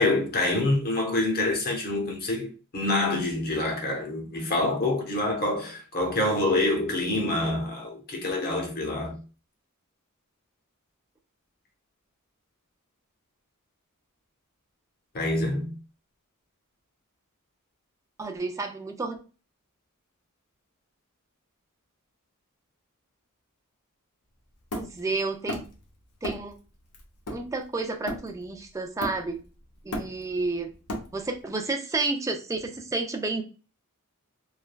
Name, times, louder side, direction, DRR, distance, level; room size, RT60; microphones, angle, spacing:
voice 1, 0.0-9.2 15.1-15.7, left 2 dB, 45° left, 0.8 m, -26 dB
voice 2, 18.2-19.2 24.8-25.6 26.2-26.5 27.3-29.4 29.8-30.7 31.1-33.4, right 3 dB, 15° right, 0.3 m, -30 dB
Hammer, 24.7-25.8 26.2-26.6 26.9-28.5 29.0-29.5 29.7-31.4, left 1 dB, 90° left, 0.7 m, -35 dB
3.2 x 2.2 x 2.2 m
head